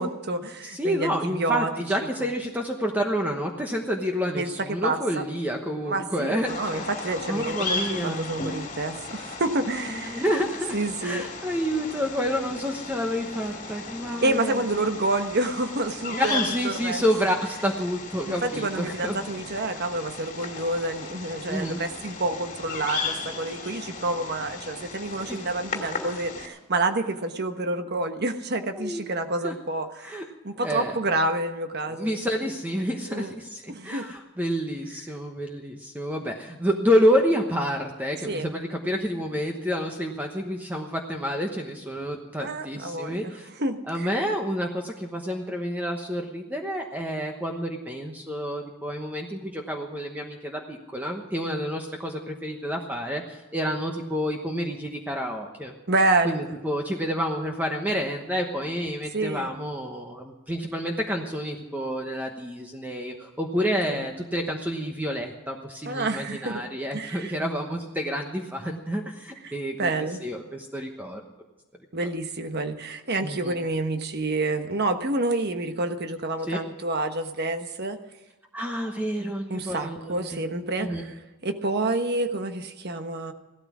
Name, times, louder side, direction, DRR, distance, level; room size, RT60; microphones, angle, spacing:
voice 1, 0.0-1.7 4.4-5.2 5.8-10.2 10.7-11.2 14.2-17.0 18.3-30.2 30.4-32.2 33.1-33.3 33.7-34.0 38.2-38.5 42.4-44.1 55.9-56.5 59.1-59.5 63.6-64.1 65.9-66.7 66.9-67.3 69.4-69.5 69.8-70.2 71.9-78.0 79.2-81.1 81.4-83.3, right 2 dB, 50° right, 7 dB, 1.2 m, -28 dB
voice 2, 0.6-8.3 9.9-14.6 16.1-19.2 21.5-21.8 25.3-25.4 28.8-29.0 29.4-29.5 30.0-30.3 30.6-31.0 31.9-43.5 43.9-55.7 56.2-69.9 70.2-71.2 72.0-72.1 73.2-73.5 76.5-76.6 78.5-80.4 80.8-81.0, equal, 10° right, 2 dB, 1.1 m, -29 dB
Bird vocalization bird call bird song, 6.5-26.5, left 4 dB, 35° left, 2.6 m, -36 dB
16.5 x 13.0 x 6.1 m, 1.1 s
head